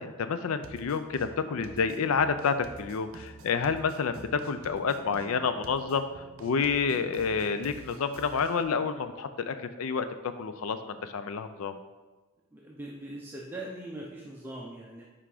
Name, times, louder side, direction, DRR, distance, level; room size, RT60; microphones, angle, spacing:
voice 1, 0.0-6.1 6.4-10.0 10.4-11.8, left 5 dB, 75° left, 11 dB, 0.4 m, -29 dB
sound 1, 0.6-8.6, right 2 dB, 65° right, 0.7 m, -48 dB
voice 2, 12.5-15.1, right 1 dB, 10° right, -4 dB, 0.6 m, -41 dB
5.8 x 4.9 x 4.9 m, 1.2 s
head